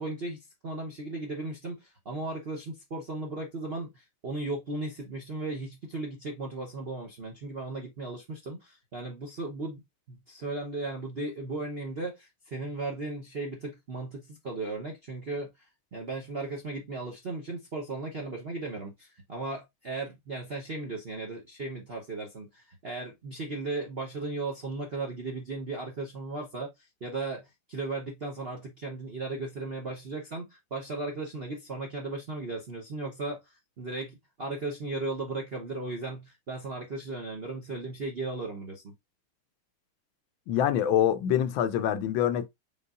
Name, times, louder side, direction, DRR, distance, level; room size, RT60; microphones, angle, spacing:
voice 1, 0.0-9.8 10.1-15.5 15.9-26.7 27.0-38.9, right 2 dB, 50° right, 0.7 m, -36 dB
voice 2, 40.5-42.5, left 10 dB, 75° left, 1.3 m, -25 dB
5.4 x 3.9 x 2.4 m
omnidirectional pair, 2.3 m